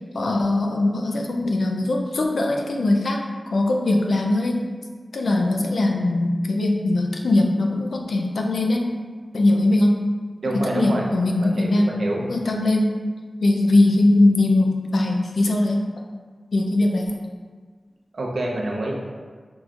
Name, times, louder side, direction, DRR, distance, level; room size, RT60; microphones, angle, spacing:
voice 1, 0.1-3.2 3.5-4.6 5.1-8.8 9.3-10.0 10.7-11.9 12.2-13.0 13.4-15.9 16.5-17.1, left 2 dB, 85° left, 1 dB, 0.5 m, -20 dB
voice 2, 10.4-11.0 11.4-12.2 18.1-18.9, right 2 dB, 80° right, -2 dB, 0.7 m, -27 dB
6.0 x 3.1 x 2.5 m, 1.5 s
wide cardioid pair, 70°, 0 cm